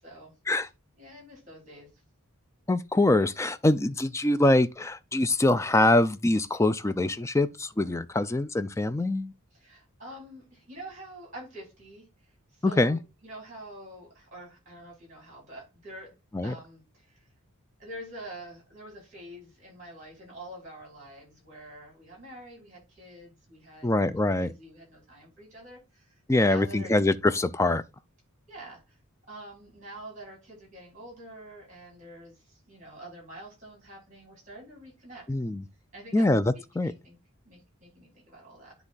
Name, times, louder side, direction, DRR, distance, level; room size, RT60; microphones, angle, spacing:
voice 1, 1.0-1.9 9.6-12.1 12.5-16.1 16.4-17.2 17.8-26.2 26.5-26.9 28.5-29.0 29.3-35.3 35.9-36.3 36.5-37.2 37.4-38.7, right 1 dB, 35° right, 5.1 m, -46 dB
voice 2, 2.7-9.3 12.6-13.0 16.3-16.6 23.8-24.5 26.3-27.8 35.3-35.6 36.1-36.9, left 2 dB, 15° left, 0.4 m, -24 dB
9.8 x 3.5 x 3.9 m
head